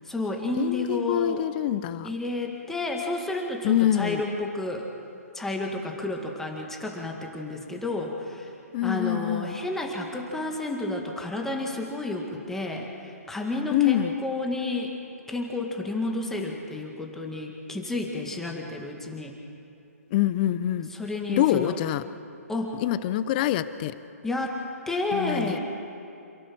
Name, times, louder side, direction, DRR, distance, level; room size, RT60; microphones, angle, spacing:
voice 1, 0.1-1.5 2.0-4.9 5.3-8.5 8.8-14.9 15.3-19.4 20.9-21.7 22.5-22.8 24.2-25.6, left 2 dB, 5° left, 1 dB, 2.0 m, -31 dB
voice 2, 0.6-2.1 3.6-4.2 8.7-9.6 13.7-14.1 20.1-20.9 21.3-22.0 22.8-23.9 25.1-25.6, left 13 dB, 35° left, 14 dB, 0.8 m, -25 dB
27.5 x 16.5 x 6.3 m, 2.8 s
hypercardioid pair, 145°, 8 cm